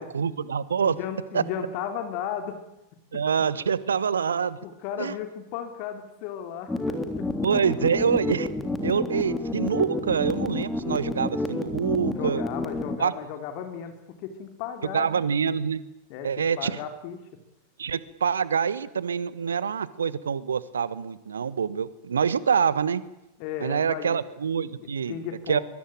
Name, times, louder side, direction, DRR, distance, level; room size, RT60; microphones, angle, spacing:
voice 1, 0.0-1.0 1.3-1.4 3.1-4.6 5.0-5.1 7.4-8.5 8.8-12.4 13.0-13.1 14.9-15.8 16.2-16.8 17.8-23.0 23.6-25.2 25.5-25.6, right 7 dB, 70° right, 18 dB, 1.3 m, -26 dB
voice 2, 0.8-2.6 4.6-7.3 12.1-15.2 16.1-17.2 23.4-24.2 24.8-25.6, left 8 dB, 45° left, 7 dB, 3.4 m, -35 dB
sound 1, 6.7-13.0, left 2 dB, 10° left, 3.6 m, -29 dB
23.5 x 23.0 x 9.1 m, 0.90 s
figure-of-eight pair, 90°, 0 cm